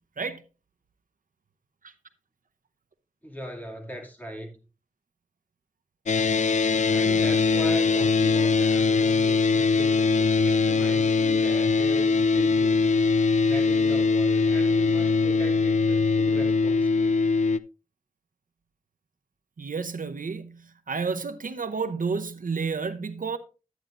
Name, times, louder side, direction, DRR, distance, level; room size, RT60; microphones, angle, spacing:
voice 1, 3.2-4.6 6.9-13.1 13.4-17.3, equal, 10° left, 2.4 m, -38 dB
sound 1, 6.1-17.6, left 4 dB, 60° left, 0.4 m, -22 dB
voice 2, 19.6-23.4, right 5 dB, 80° right, 0.7 m, -31 dB
11.0 x 9.0 x 2.5 m
wide cardioid pair, 65°, 14 cm